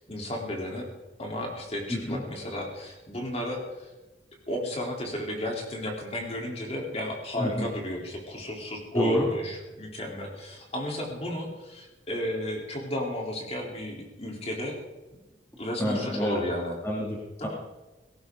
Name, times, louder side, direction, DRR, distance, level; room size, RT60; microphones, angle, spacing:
voice 1, 0.1-0.9 1.2-3.9 4.5-14.8 15.6-16.8 17.4-17.5, left 1 dB, 35° left, 0 dB, 3.9 m, -33 dB
voice 2, 8.9-9.3 15.8-16.4 16.8-17.5, equal, 15° left, -3 dB, 2.7 m, -27 dB
18.0 x 17.5 x 4.0 m, 1.1 s
head